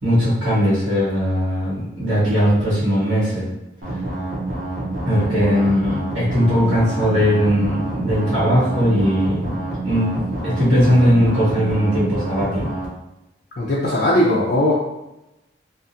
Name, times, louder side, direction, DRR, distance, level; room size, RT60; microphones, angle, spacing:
voice 1, 0.0-3.5 5.0-9.6 9.8-12.7, equal, 85° right, -9 dB, 1.4 m, -19 dB
sound 1, 3.8-12.9, right 2 dB, 45° right, 0.8 m, -27 dB
voice 2, 13.6-14.7, left 1 dB, 55° left, -6 dB, 0.4 m, -18 dB
2.5 x 2.4 x 2.6 m, 0.92 s
head